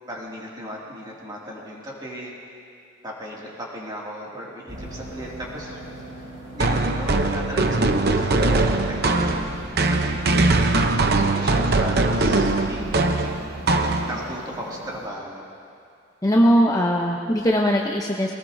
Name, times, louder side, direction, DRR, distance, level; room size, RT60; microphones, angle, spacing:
voice 1, 0.1-2.3 3.0-5.8 6.5-13.1 14.1-15.5, equal, 20° right, -4 dB, 2.4 m, -36 dB
sound 1, 4.7-15.1, equal, 85° right, 4.5 m, -40 dB
sound 2, 6.6-14.4, right 2 dB, 50° right, 0.8 m, -21 dB
voice 2, 16.2-18.3, equal, 20° left, -1 dB, 0.8 m, -19 dB
23.0 x 18.5 x 2.7 m, 2.5 s
head